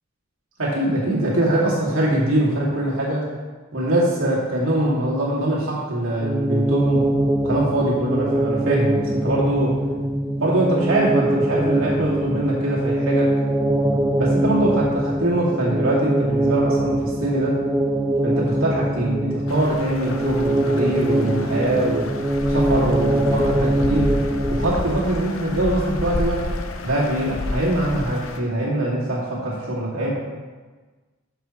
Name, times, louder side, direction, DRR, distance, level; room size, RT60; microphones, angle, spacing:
voice 1, 0.6-3.3 3.7-7.1 7.4-9.8 10.4-13.3 14.2-17.6 18.2-22.1 22.5-24.1 24.5-26.4 26.8-30.1, right 1 dB, 80° right, -5 dB, 2.4 m, -22 dB
sound 1, 6.2-25.0, right 1 dB, 15° right, 0.3 m, -22 dB
sound 2, 19.5-28.4, left 2 dB, 75° left, 0.7 m, -30 dB
12.5 x 5.7 x 3.1 m, 1.3 s
head